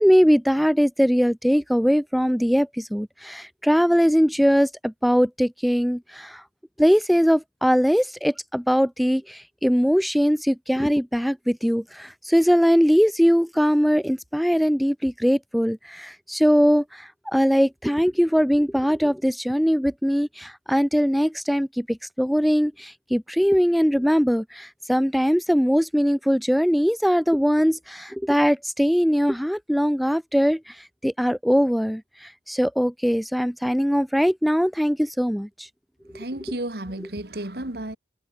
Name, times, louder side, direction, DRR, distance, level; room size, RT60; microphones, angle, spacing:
voice 1, 0.0-6.4 6.8-35.7, equal, ahead, 0.7 m, -21 dB
voice 2, 36.1-38.0, right 1 dB, 60° right, 2.2 m, -32 dB
head